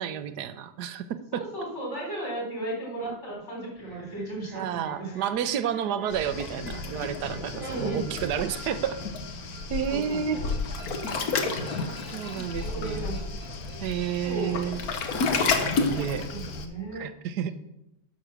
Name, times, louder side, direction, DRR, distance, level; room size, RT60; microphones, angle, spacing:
voice 1, 0.0-1.4 4.5-9.0 9.7-10.4 12.1-13.1 13.8-14.8 15.8-16.3 16.9-17.5, right 9 dB, 80° right, 12 dB, 1.3 m, -30 dB
voice 2, 1.3-5.1 7.5-8.1 9.9-10.5 12.3-13.2 14.2-14.6 16.3-17.1, right 2 dB, 40° left, -3 dB, 4.2 m, -35 dB
sound 1, 3.7-16.1, right 1 dB, 15° left, 2.1 m, -51 dB
Waves surf, 6.1-16.7, left 4 dB, 65° left, 1.4 m, -31 dB
10.0 x 6.4 x 6.1 m, 0.89 s
omnidirectional pair, 1.7 m